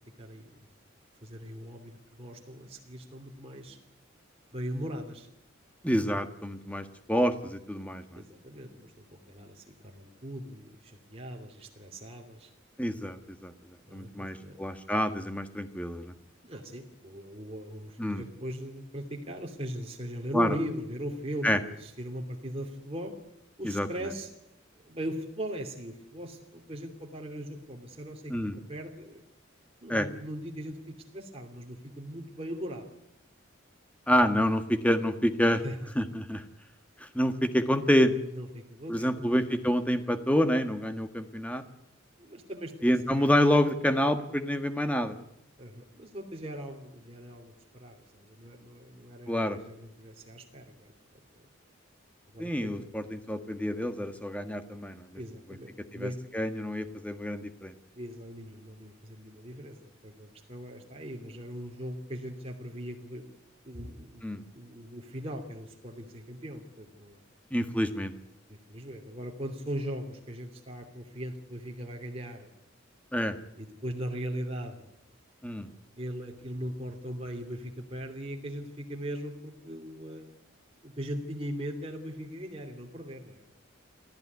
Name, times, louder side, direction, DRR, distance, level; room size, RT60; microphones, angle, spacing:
voice 1, 0.2-0.5 1.2-3.8 4.5-5.3 8.1-12.5 13.9-14.6 16.4-23.1 23.6-24.3 24.8-29.2 29.8-32.9 35.4-35.9 38.2-39.3 42.2-43.3 45.6-50.9 52.3-52.9 55.1-56.2 58.0-63.2 63.6-67.2 68.5-72.5 73.6-74.9 76.0-80.3 80.8-83.4, equal, 30° right, 1 dB, 2.8 m, -39 dB
voice 2, 5.8-8.2 12.8-13.5 13.9-16.1 18.0-18.2 20.3-20.5 21.4-21.6 23.6-23.9 28.3-28.5 29.9-30.1 34.1-35.6 35.9-36.4 37.1-38.1 38.9-41.6 42.8-45.1 49.3-49.6 52.4-55.2 55.9-57.7 64.2-64.4 67.5-68.1 73.1-73.3 75.4-75.7, equal, 5° left, 8 dB, 1.5 m, -27 dB
26.0 x 15.0 x 9.6 m, 0.87 s
head